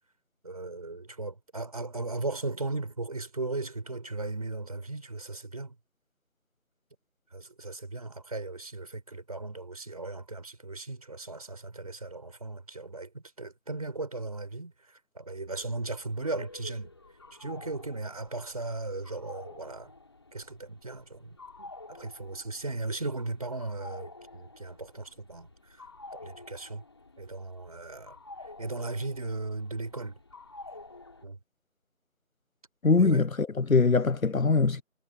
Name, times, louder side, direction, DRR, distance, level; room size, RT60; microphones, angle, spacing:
voice 1, 0.4-5.8 7.3-16.9 17.4-19.9 20.3-25.8 26.1-26.8 27.2-28.2 28.6-30.2 31.2-31.4 32.9-33.3, right 3 dB, 25° right, 5.3 m, -37 dB
sound 1, 15.5-31.3, left 2 dB, 20° left, 3.8 m, -50 dB
voice 2, 32.8-34.8, left 4 dB, 80° left, 1.1 m, -23 dB
figure-of-eight pair, 175°, 41 cm